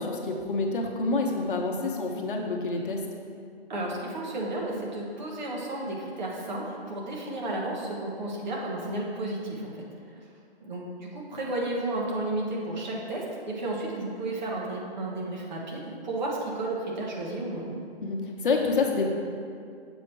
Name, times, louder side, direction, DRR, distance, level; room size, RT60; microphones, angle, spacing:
voice 1, 0.0-3.0 18.0-18.2 18.4-19.1, left 3 dB, 50° left, 0 dB, 1.0 m, -27 dB
voice 2, 3.7-9.7 10.6-17.6, right 2 dB, 45° right, -3 dB, 1.4 m, -32 dB
7.2 x 4.3 x 4.6 m, 2.4 s
hypercardioid pair, 160°, 32 cm